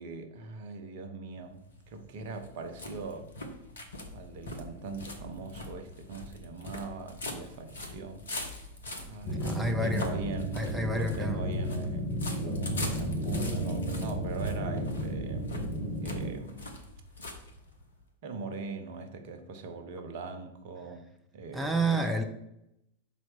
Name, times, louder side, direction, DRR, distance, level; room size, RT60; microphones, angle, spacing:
voice 1, 0.0-3.3 4.1-8.2 9.0-10.6 10.9-12.1 12.3-15.5 16.0-16.7 18.2-21.1 21.3-22.2, right 4 dB, 50° right, 0.8 m, -41 dB
sound 1, 1.5-18.0, left 2 dB, 70° left, 1.1 m, -43 dB
sound 2, 9.2-16.3, equal, 25° left, 2.2 m, -33 dB
voice 2, 9.4-10.1 10.5-11.5 21.5-22.2, right 1 dB, 5° right, 0.6 m, -29 dB
4.5 x 4.1 x 5.7 m
figure-of-eight pair, 90°, 0 cm